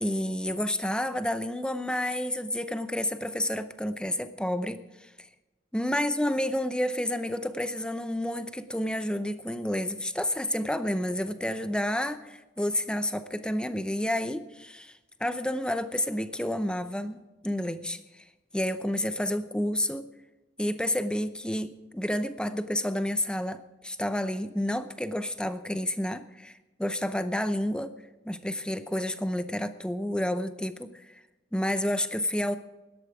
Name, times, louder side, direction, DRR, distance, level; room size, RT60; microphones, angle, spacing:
voice 1, 0.0-5.3 5.7-18.2 18.5-20.1 20.6-27.9 28.3-31.1 31.5-32.6, left 1 dB, 5° left, 10 dB, 0.6 m, -30 dB
17.0 x 12.0 x 4.9 m, 1.1 s
head